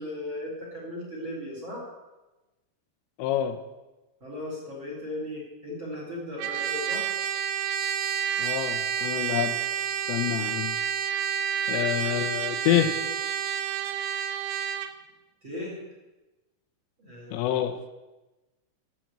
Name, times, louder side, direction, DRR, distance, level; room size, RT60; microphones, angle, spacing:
voice 1, 0.0-1.9 4.2-7.1 15.4-15.8 17.0-17.6, left 1 dB, 25° right, -3 dB, 3.7 m, -37 dB
voice 2, 3.2-3.6 8.4-9.5 10.1-10.7 11.7-12.9 17.3-17.8, left 12 dB, 85° left, 7 dB, 3.4 m, -27 dB
Trumpet, 6.4-14.9, right 9 dB, 80° right, 3.0 m, -29 dB
12.0 x 7.6 x 8.6 m, 1.1 s
omnidirectional pair, 5.7 m